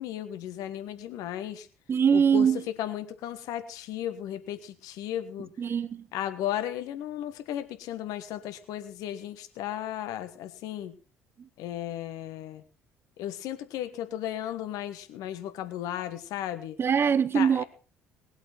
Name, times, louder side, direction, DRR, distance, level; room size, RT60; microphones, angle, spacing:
voice 1, 0.0-1.7 2.1-5.5 6.1-10.9 11.6-12.6 13.2-16.8 17.3-17.6, left 11 dB, 55° left, 1.3 m, -35 dB
voice 2, 1.9-2.6 5.6-6.1 16.8-17.6, right 7 dB, 35° right, 0.8 m, -23 dB
20.0 x 8.0 x 4.2 m
figure-of-eight pair, 55°, 7 cm